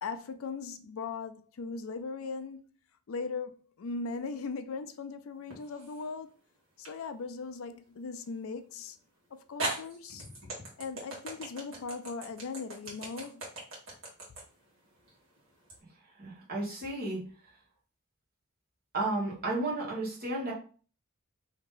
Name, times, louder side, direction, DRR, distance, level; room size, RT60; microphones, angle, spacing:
voice 1, 0.0-2.6 3.1-6.3 6.8-9.0 9.3-10.3 10.8-13.4, left 4 dB, 70° left, 0.4 m, -39 dB
sound 1, 5.5-6.1 6.8-7.0 8.8-8.9 9.6-15.8, right 2 dB, 70° right, 1.5 m, -39 dB
voice 2, 16.2-17.2 18.9-20.5, right 2 dB, 45° right, 1.5 m, -33 dB
2.9 x 2.7 x 3.8 m
head